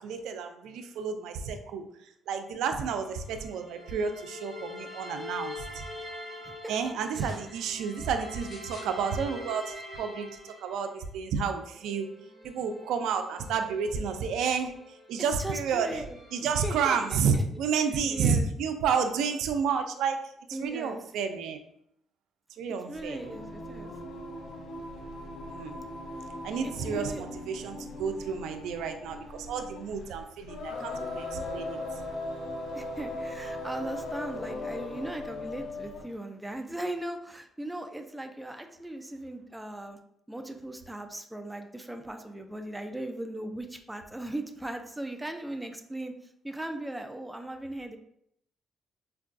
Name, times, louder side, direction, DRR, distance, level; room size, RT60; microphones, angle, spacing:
voice 1, 0.0-1.8 2.3-5.8 6.7-12.1 12.4-16.0 16.3-21.6 22.6-23.2 25.5-25.8 26.4-31.8, right 6 dB, 85° right, 7 dB, 0.3 m, -31 dB
sound 1, 2.8-11.1 11.6-15.4 15.9-17.1, left 1 dB, 35° left, 1.1 m, -45 dB
voice 2, 6.6-7.4 15.4-16.1 16.6-17.4 18.1-18.5 20.5-21.0 22.9-23.9 26.6-27.2 32.7-40.0 40.3-46.1 46.4-48.0, right 1 dB, 5° right, 5 dB, 0.4 m, -38 dB
sound 2, 7.0-7.5 8.4-9.0 9.8-9.9, left 1 dB, 55° left, 1.5 m, -51 dB
Singing, 22.9-36.1, left 2 dB, 80° left, 0.6 m, -39 dB
4.5 x 2.2 x 2.5 m, 0.73 s
cardioid pair, 90°, 0 cm